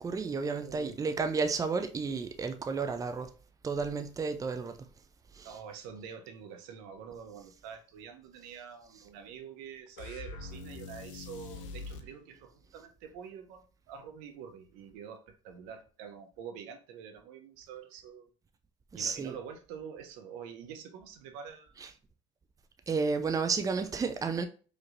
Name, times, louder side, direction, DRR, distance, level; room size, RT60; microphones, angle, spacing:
voice 1, 0.0-3.3 3.6-4.8 5.3-5.6 8.9-9.1 18.9-19.4 21.8-21.9 22.9-24.5, right 4 dB, 20° right, 0.6 m, -32 dB
voice 2, 0.6-1.1 5.4-18.3 18.9-21.7, right 7 dB, 75° right, 0.8 m, -46 dB
sound 1, 10.0-12.1, left 3 dB, 85° left, 0.6 m, -43 dB
5.0 x 3.0 x 2.6 m
hypercardioid pair, 75°, 16 cm